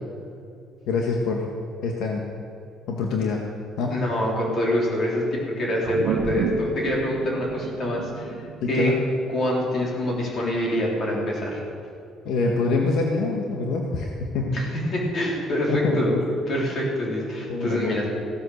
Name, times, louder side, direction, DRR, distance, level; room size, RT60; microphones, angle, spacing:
voice 1, 0.9-1.4 1.8-2.2 2.9-3.4 3.8-4.0 8.6-9.0 12.2-14.6 15.7-16.2 17.5-18.0, left 3 dB, 75° left, 0 dB, 1.5 m, -25 dB
voice 2, 3.9-8.9 9.3-11.6 14.5-16.1 16.5-18.0, equal, 45° left, -3 dB, 4.0 m, -25 dB
sound 1, 5.8-10.6, right 7 dB, 70° right, 0.8 m, -32 dB
16.5 x 8.1 x 6.5 m, 2.5 s
cardioid pair, 130°, 0 cm